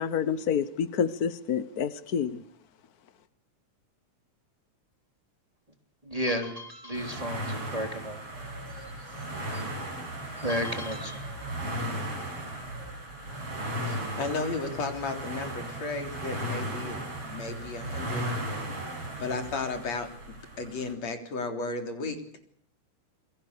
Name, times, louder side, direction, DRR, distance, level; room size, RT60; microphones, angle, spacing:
voice 1, 0.0-2.4, left 7 dB, 75° left, 0.8 m, -28 dB
voice 2, 6.0-8.2 9.5-9.6 10.4-11.2, equal, 10° right, 3.1 m, -32 dB
sound 1, 6.9-20.9, right 1 dB, 45° right, 7.4 m, -36 dB
voice 3, 13.9-17.0 17.3-18.2 19.2-22.2, left 3 dB, 60° left, 4.7 m, -34 dB
27.5 x 23.0 x 6.8 m
omnidirectional pair, 3.5 m